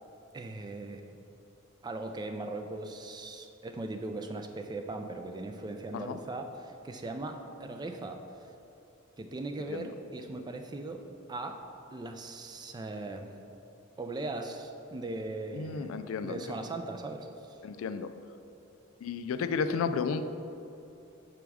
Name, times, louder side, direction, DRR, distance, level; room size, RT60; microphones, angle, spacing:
voice 1, 0.3-1.0 1.8-8.2 9.2-11.0 11.3-11.6 11.9-13.3 14.0-15.9 16.2-17.6, right 2 dB, 20° right, 5 dB, 0.3 m, -39 dB
voice 2, 15.5-16.4 17.6-18.1 19.0-20.3, left 5 dB, 75° left, 10 dB, 0.3 m, -32 dB
6.1 x 3.4 x 4.7 m, 2.8 s
head